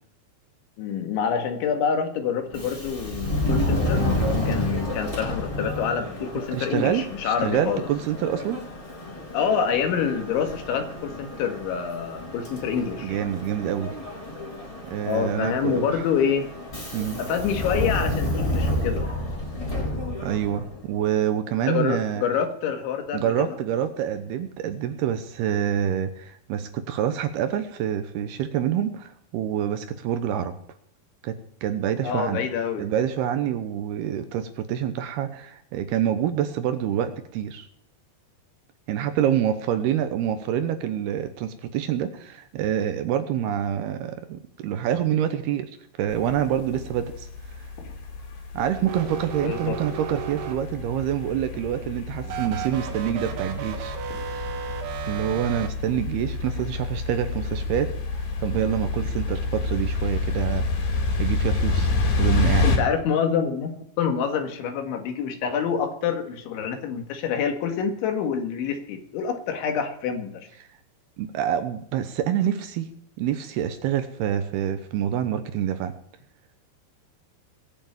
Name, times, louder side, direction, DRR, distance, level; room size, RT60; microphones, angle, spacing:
voice 1, 0.8-4.1 4.5-7.9 9.3-13.2 15.1-16.5 17.2-19.1 21.7-23.6 32.0-32.9 49.4-49.8 62.6-70.5, left 7 dB, 90° left, 6 dB, 4.3 m, -27 dB
Subway metro underground, 2.5-20.8, left 1 dB, 10° left, 3.1 m, -30 dB
voice 2, 6.5-8.6 13.0-13.9 14.8-16.0 16.9-17.2 20.2-22.3 23.1-30.5 31.2-32.5 32.8-37.7 38.9-45.7 46.0-47.3 48.5-54.0 54.2-54.5 55.1-57.9 58.4-60.7 61.2-61.9 62.2-62.7 71.2-72.9 73.2-75.9, right 10 dB, 75° right, 9 dB, 2.6 m, -26 dB
sound 1, 46.1-62.8, left 3 dB, 65° left, 4.8 m, -28 dB
sound 2, 48.8-51.0 52.2-55.7, right 8 dB, 90° right, 4.3 m, -34 dB
20.5 x 7.2 x 8.9 m, 0.66 s
omnidirectional pair, 5.2 m